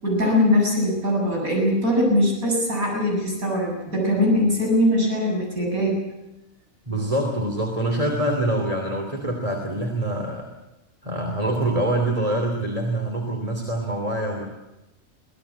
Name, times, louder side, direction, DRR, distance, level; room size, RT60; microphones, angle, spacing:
voice 1, 0.0-6.0, left 1 dB, 80° right, -2 dB, 8.2 m, -21 dB
voice 2, 6.9-10.5 11.0-14.5, right 1 dB, 25° right, 2 dB, 3.1 m, -25 dB
25.0 x 17.5 x 8.3 m, 1.0 s
omnidirectional pair, 1.5 m